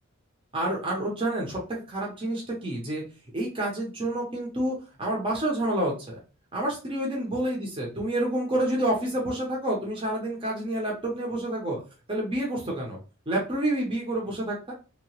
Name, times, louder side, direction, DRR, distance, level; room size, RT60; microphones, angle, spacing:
voice 1, 0.5-3.0 3.3-6.2 6.5-11.8 12.1-13.0 13.3-14.7, right 1 dB, 25° right, -2 dB, 0.7 m, -28 dB
2.8 x 2.2 x 2.9 m, 0.34 s
head